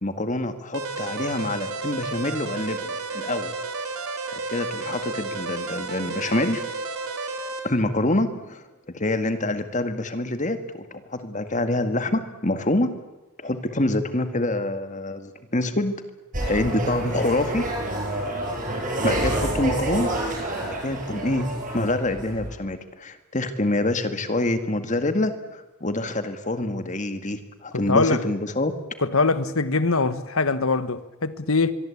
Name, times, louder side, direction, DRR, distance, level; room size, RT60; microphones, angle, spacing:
voice 1, 0.0-3.5 4.3-6.6 7.6-8.7 8.9-12.9 13.4-16.1 16.5-17.7 19.0-21.5 21.7-28.7, left 1 dB, 35° left, 2.0 m, -26 dB
sound 1, 0.7-7.6, right 3 dB, 85° right, 3.9 m, -32 dB
sound 2, 16.3-22.5, right 1 dB, 35° right, 7.8 m, -28 dB
voice 2, 27.9-28.2 29.0-31.7, left 3 dB, 70° left, 1.5 m, -22 dB
24.0 x 23.5 x 8.6 m
head